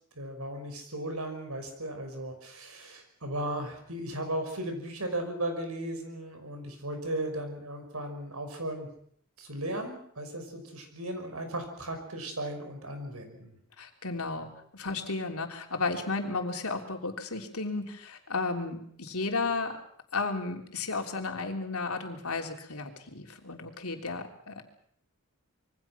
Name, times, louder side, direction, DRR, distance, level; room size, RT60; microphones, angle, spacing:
voice 1, 0.2-8.9 9.4-13.6, right 1 dB, 85° right, 6 dB, 5.8 m, -36 dB
voice 2, 13.8-19.8 20.1-24.6, left 3 dB, 85° left, 3 dB, 3.5 m, -33 dB
26.5 x 23.0 x 6.0 m, 0.64 s
head